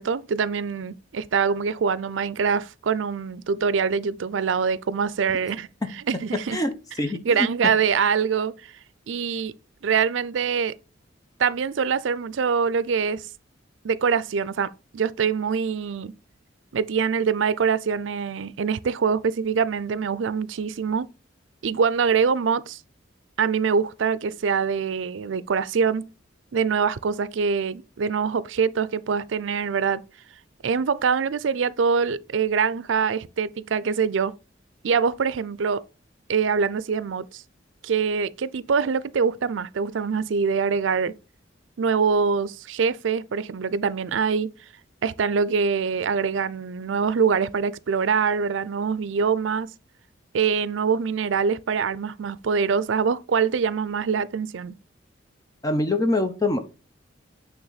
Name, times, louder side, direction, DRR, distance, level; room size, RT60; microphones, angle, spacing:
voice 1, 0.0-5.7 6.1-6.6 7.3-8.5 9.1-9.5 9.8-10.8 11.4-13.3 13.8-16.1 16.7-21.1 21.6-22.8 23.4-26.1 26.5-30.0 30.6-34.3 34.8-35.8 36.3-37.4 37.8-41.1 41.8-44.5 45.0-49.7 50.3-54.7, right 6 dB, 80° right, 0.5 m, -24 dB
voice 2, 7.0-7.5 55.6-56.6, left 2 dB, 20° left, 0.7 m, -24 dB
8.7 x 3.4 x 4.0 m
head